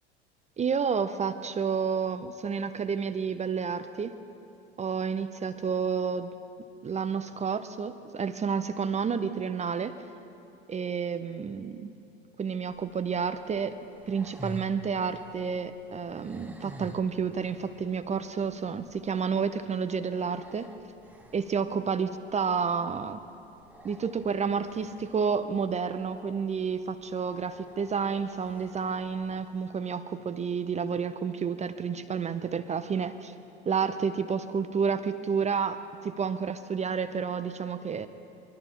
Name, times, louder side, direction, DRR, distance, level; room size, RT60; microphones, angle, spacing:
voice 1, 0.6-4.1 4.8-6.3 6.8-10.0 10.7-11.9 12.4-13.8 14.1-20.7 21.3-23.2 23.8-33.3 33.7-38.1, right 6 dB, 20° right, 11 dB, 0.6 m, -30 dB
sound 1, 12.7-29.7, equal, 5° right, 1.1 m, -50 dB
22.0 x 13.5 x 4.4 m, 2.6 s
hypercardioid pair, 75°, 33 cm